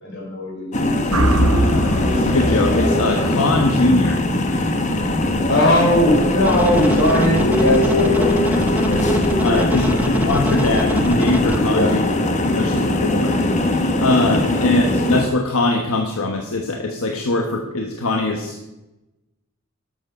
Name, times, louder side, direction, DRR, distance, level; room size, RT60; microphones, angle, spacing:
voice 1, 0.0-1.8 5.5-9.1 9.4-10.0 11.6-12.0 14.4-14.5, left 1 dB, 55° left, -3 dB, 5.0 m, -21 dB
sound 1, 0.7-15.3, left 1 dB, 35° left, 1.1 m, -20 dB
sound 2, 1.1-5.3, right 1 dB, 90° right, 1.2 m, -24 dB
voice 2, 1.7-4.2 9.4-12.0 12.3-13.4 14.0-18.7, left 2 dB, 80° left, 3 dB, 1.2 m, -21 dB
sound 3, 6.4-11.6, right 1 dB, 10° right, 0.6 m, -27 dB
12.0 x 8.0 x 5.4 m, 0.99 s
head